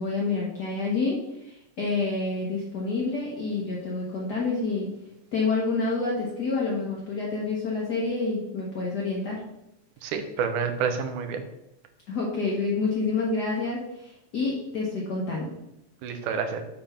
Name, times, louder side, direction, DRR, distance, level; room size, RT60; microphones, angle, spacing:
voice 1, 0.0-4.9 5.3-9.4 12.1-15.5, left 3 dB, 85° left, -4 dB, 0.9 m, -28 dB
voice 2, 10.0-11.4 16.0-16.6, right 6 dB, 85° right, 7 dB, 2.3 m, -28 dB
7.5 x 3.5 x 5.6 m, 0.87 s
omnidirectional pair, 3.5 m